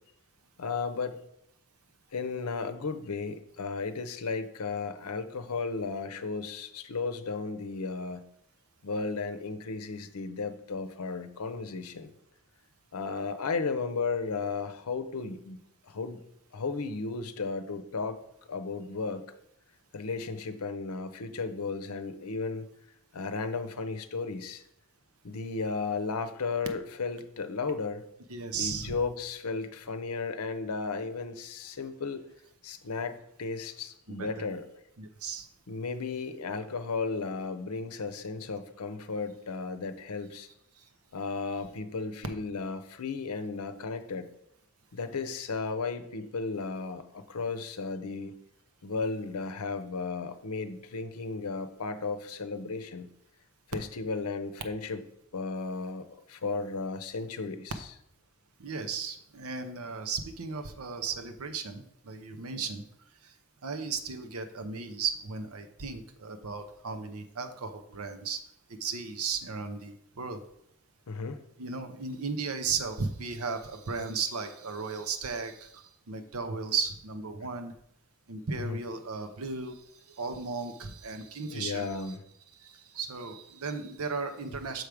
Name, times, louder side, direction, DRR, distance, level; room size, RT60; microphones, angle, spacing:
voice 1, 0.6-1.2 2.1-8.3 8.8-12.1 12.9-15.6 15.9-16.2 16.5-18.2 18.5-19.2 19.9-22.7 23.1-24.6 25.2-28.0 28.5-32.2 32.6-34.6 35.7-40.5 41.1-44.3 44.9-48.4 48.8-53.1 53.7-55.0 55.3-57.9 71.1-71.4 78.5-78.8 81.4-82.2, left 4 dB, 85° left, 9 dB, 0.7 m, -34 dB
voice 2, 28.3-28.9 34.1-34.4 35.0-35.5 58.6-62.8 63.6-68.4 68.7-70.4 71.6-75.7 76.1-77.7 78.3-79.7 80.2-82.0 83.0-84.9, right 5 dB, 80° right, 8 dB, 0.7 m, -35 dB
6.4 x 4.7 x 5.0 m, 0.76 s
head